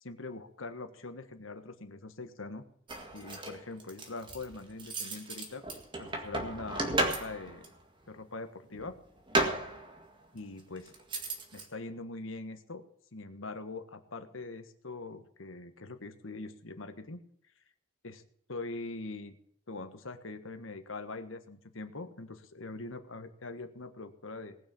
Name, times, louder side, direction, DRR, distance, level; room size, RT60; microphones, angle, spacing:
voice 1, 0.0-2.7 3.1-5.7 6.0-7.7 8.1-9.0 10.3-10.9 11.5-12.8 13.1-17.2 18.0-18.2 18.5-19.4 19.7-24.6, left 3 dB, 85° left, 9 dB, 1.5 m, -43 dB
sound 1, 2.9-7.7 8.7-10.1 10.8-11.6, right 2 dB, 25° right, 1.9 m, -34 dB
19.0 x 6.5 x 7.1 m, 0.67 s
head